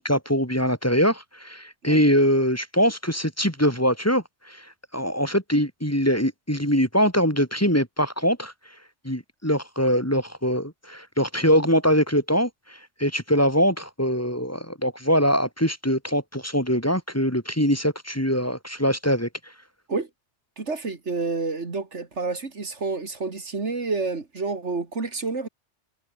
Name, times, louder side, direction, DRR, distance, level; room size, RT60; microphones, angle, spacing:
voice 1, 0.0-4.7 4.9-8.5 9.0-19.3, equal, 10° left, 3.8 m, -23 dB
voice 2, 20.6-25.5, right 3 dB, 70° right, 2.7 m, -29 dB
omnidirectional pair, 1.2 m